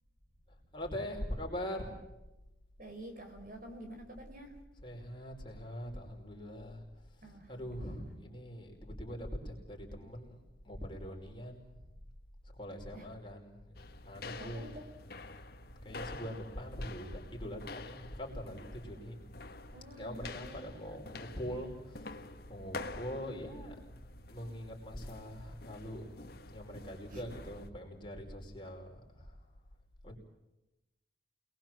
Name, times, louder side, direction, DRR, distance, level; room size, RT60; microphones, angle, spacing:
voice 1, 0.7-2.0 4.8-6.8 7.2-10.4 10.6-11.8 12.6-14.7 15.8-19.2 20.0-22.1 22.5-23.7 24.3-26.0 26.5-29.3 30.0-30.2, equal, 25° left, 0 dB, 5.1 m, -43 dB
voice 2, 2.8-4.5 7.2-8.3 12.9-13.1 14.4-14.8 19.7-20.9 27.1-27.3, right 1 dB, 50° right, 4 dB, 4.8 m, -49 dB
sound 1, 13.7-27.7, left 3 dB, 55° left, 1.5 m, -48 dB
28.0 x 21.0 x 7.6 m, 0.97 s
head